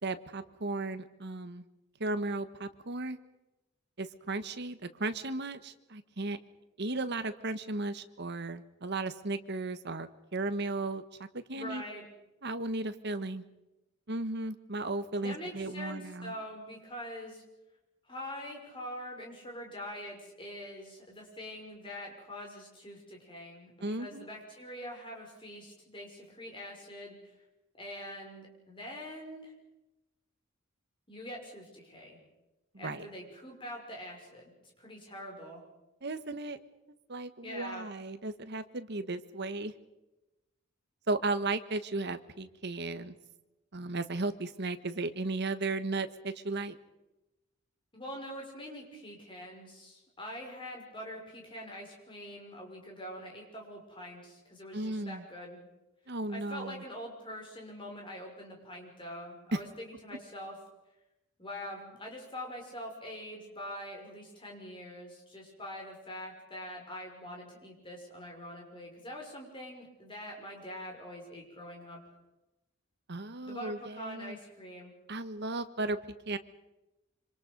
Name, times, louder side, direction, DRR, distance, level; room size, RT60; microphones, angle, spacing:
voice 1, 0.0-1.6 2.0-3.2 4.0-6.4 6.8-11.0 11.3-11.8 12.4-13.4 14.1-16.3 23.8-24.3 32.7-33.1 36.0-36.6 37.1-39.7 41.1-43.2 43.7-46.8 54.7-55.2 56.1-56.8 73.1-74.4 75.1-76.4, right 2 dB, 55° right, 11 dB, 1.3 m, -35 dB
voice 2, 11.5-12.1 15.2-17.4 18.1-27.3 27.7-29.5 31.1-32.2 32.8-35.6 37.4-37.9 47.9-55.6 56.3-60.6 61.4-72.0 73.4-74.9, equal, 25° left, 0 dB, 5.9 m, -44 dB
26.5 x 26.0 x 5.4 m, 0.98 s
head